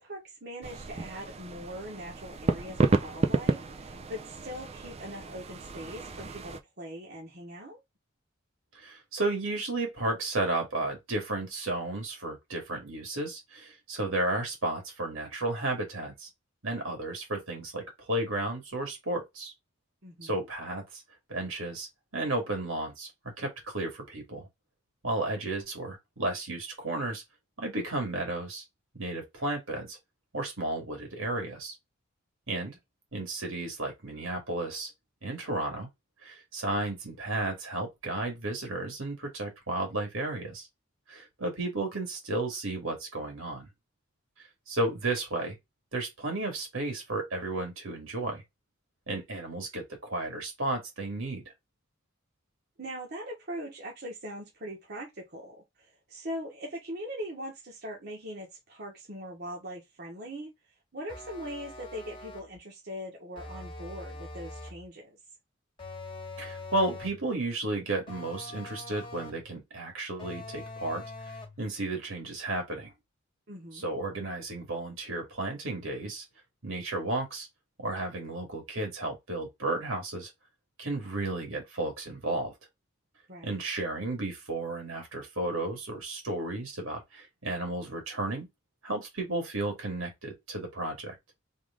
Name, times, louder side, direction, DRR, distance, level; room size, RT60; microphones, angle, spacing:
voice 1, 0.0-7.8 20.0-20.5 32.5-32.8 52.8-60.5 60.9-65.2 73.5-73.9 83.3-83.6, equal, 50° right, 1.2 m, -41 dB
sound 1, 0.6-6.6, right 3 dB, 30° right, 0.4 m, -31 dB
voice 2, 8.7-16.3 16.6-19.5 20.2-21.0 21.3-23.1 23.4-24.5 25.0-27.2 27.6-28.6 28.9-30.0 30.3-31.7 32.5-32.7 33.1-34.9 35.2-35.9 36.2-40.7 41.1-43.7 44.7-45.6 45.9-48.4 49.1-51.4 66.4-72.9 73.7-76.2 76.6-77.5 77.8-80.3 80.8-82.5 83.4-88.5 88.8-91.2, right 2 dB, 80° right, 2.2 m, -33 dB
sound 2, 61.1-62.6 63.4-64.9 65.8-67.3 68.1-69.5 70.2-71.6, left 2 dB, 25° left, 1.3 m, -43 dB
3.7 x 3.2 x 3.7 m
head